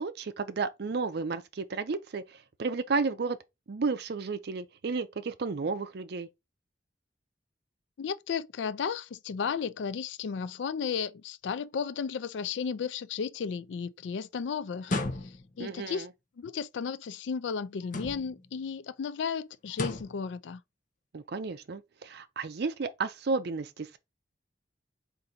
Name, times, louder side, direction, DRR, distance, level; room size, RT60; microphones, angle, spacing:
voice 1, 0.0-3.4 3.7-6.3 15.6-16.1 21.1-24.0, right 4 dB, 60° right, 0.5 m, -32 dB
voice 2, 8.0-14.9 15.2-16.1 16.4-20.6, left 6 dB, 75° left, 0.4 m, -34 dB
sound 1, 14.8-15.6 17.8-18.5 19.7-20.2, left 2 dB, 45° left, 0.7 m, -34 dB
3.9 x 2.6 x 4.2 m
head